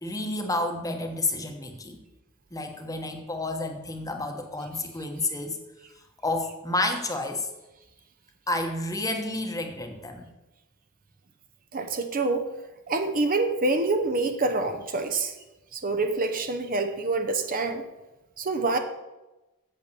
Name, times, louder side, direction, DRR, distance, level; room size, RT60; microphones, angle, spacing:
voice 1, 0.0-2.0 2.5-5.6 6.2-7.5 8.5-10.3, left 2 dB, 15° left, 5 dB, 1.1 m, -30 dB
voice 2, 11.7-12.5 12.9-15.3 15.7-17.8 18.4-18.8, right 3 dB, 40° right, 7 dB, 0.9 m, -26 dB
8.7 x 7.7 x 6.7 m, 1.0 s
head